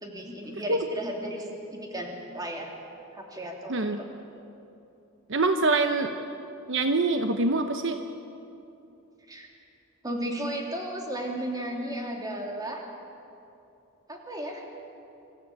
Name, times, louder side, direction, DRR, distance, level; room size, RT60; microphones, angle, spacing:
voice 1, 0.0-2.7 3.1-4.4 9.3-9.5 10.0-12.8 14.1-14.6, right 1 dB, 20° right, 0 dB, 2.9 m, -35 dB
voice 2, 5.3-6.1 6.7-8.0, right 3 dB, 60° right, 7 dB, 0.9 m, -24 dB
25.5 x 14.5 x 8.6 m, 2.8 s
head